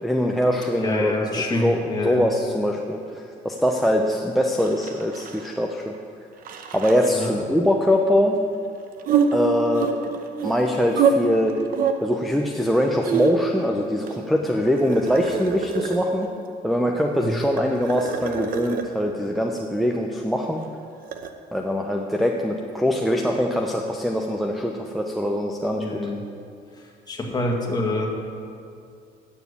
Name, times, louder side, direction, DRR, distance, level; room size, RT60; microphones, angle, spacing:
voice 1, 0.0-5.9 6.7-8.4 9.3-10.1 10.4-11.5 12.0-16.3 16.6-20.6 21.5-26.0, equal, ahead, 2 dB, 0.7 m, -23 dB
voice 2, 0.8-2.2 7.1-7.3 17.2-17.4 25.8-26.2 27.1-28.1, left 2 dB, 25° left, 0 dB, 2.1 m, -26 dB
sound 1, 4.6-5.7 5.9-6.0 6.4-7.3 9.0-11.1 11.4-11.9 12.7-13.6 14.0-16.2 17.3-18.9 20.6-21.3, right 8 dB, 60° right, 0.9 m, -26 dB
9.0 x 7.2 x 8.2 m, 2.5 s
cardioid pair, 110°, 17 cm